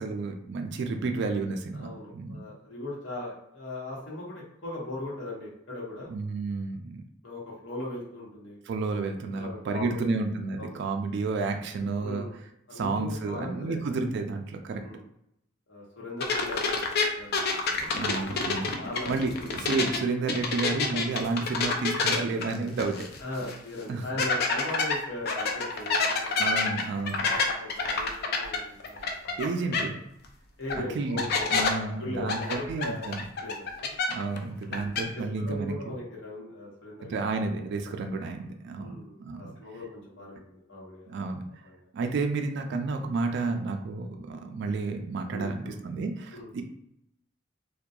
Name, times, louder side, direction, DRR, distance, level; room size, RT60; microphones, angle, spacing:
voice 1, 0.0-2.4 6.1-7.0 8.7-12.3 12.7-14.8 18.0-18.8 19.1-23.1 23.9-24.1 26.4-27.3 29.4-30.0 30.9-33.3 34.1-35.9 37.0-38.9 39.2-39.5 41.1-41.4 41.9-46.6, right 3 dB, 60° right, 4 dB, 0.3 m, -31 dB
voice 2, 1.7-6.1 7.2-8.6 9.3-10.2 10.6-10.8 12.0-12.3 12.7-14.0 14.8-15.0 15.7-16.8 17.2-17.9 18.7-19.5 23.2-26.7 26.9-29.4 30.6-33.9 34.7-37.4 38.8-41.2 41.6-41.9 45.3-45.8 46.3-46.5, left 2 dB, 70° left, -5 dB, 0.9 m, -39 dB
sound 1, 16.2-20.0 20.3-23.2 23.5-23.6 24.2-29.5 29.7-29.8 30.7-30.8 31.2-31.7 32.3-34.4 34.6-35.0, left 4 dB, 55° left, 0.4 m, -27 dB
2.7 x 2.2 x 2.3 m, 0.77 s
head